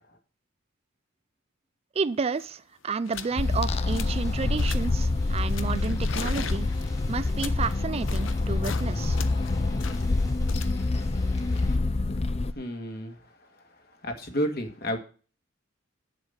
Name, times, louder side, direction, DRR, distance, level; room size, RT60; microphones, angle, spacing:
sound 1, 2.0-2.1 2.3-2.6 3.0-3.4 3.7-4.2 4.6-5.0 5.5-8.9 9.1-12.2, left 7 dB, 80° left, 0.8 m, -41 dB
voice 1, 2.0-6.7 7.1-9.2, right 4 dB, 30° right, 15 dB, 0.4 m, -31 dB
sound 2, 3.1-11.8, equal, 15° left, 1.4 m, -44 dB
sound 3, 3.4-12.5, left 2 dB, 30° left, 0.5 m, -26 dB
voice 2, 12.5-13.5 13.9-15.0, equal, 55° left, 4 dB, 2.0 m, -32 dB
8.1 x 7.6 x 5.7 m, 0.37 s
head